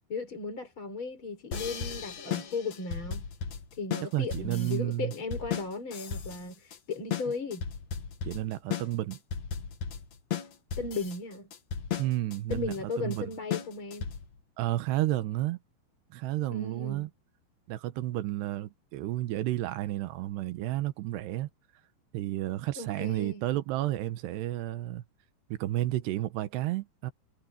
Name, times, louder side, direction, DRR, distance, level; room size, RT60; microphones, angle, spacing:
voice 1, 0.1-3.3 3.8-7.6 10.8-11.5 12.5-14.1 16.5-17.1 22.8-23.4, left 3 dB, 30° left, 4.9 m, -36 dB
sound 1, 1.5-14.4, left 7 dB, 50° left, 2.6 m, -36 dB
voice 2, 4.1-5.1 8.2-9.2 12.0-13.3 14.6-15.6 16.1-17.1 17.7-21.5 22.1-25.0 25.5-27.1, right 15 dB, 80° right, 3.1 m, -31 dB
omnidirectional pair, 4.8 m